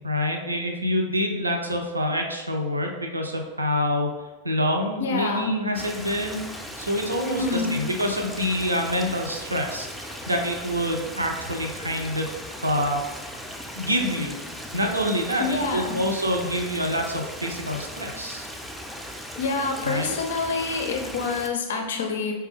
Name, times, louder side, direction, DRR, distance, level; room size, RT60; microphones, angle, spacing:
voice 1, 0.0-4.1 4.4-6.4 6.8-12.3 12.6-13.0 13.7-14.4 14.7-18.5 19.8-20.1, equal, 80° right, 2 dB, 0.4 m, -26 dB
voice 2, 5.0-5.6 7.3-7.8 15.4-16.0 19.4-22.3, left 3 dB, 60° left, 4 dB, 0.5 m, -27 dB
Stream, 5.7-21.5, equal, ahead, 0.4 m, -38 dB
4.6 x 2.3 x 3.2 m, 1.2 s
figure-of-eight pair, 90°, 0 cm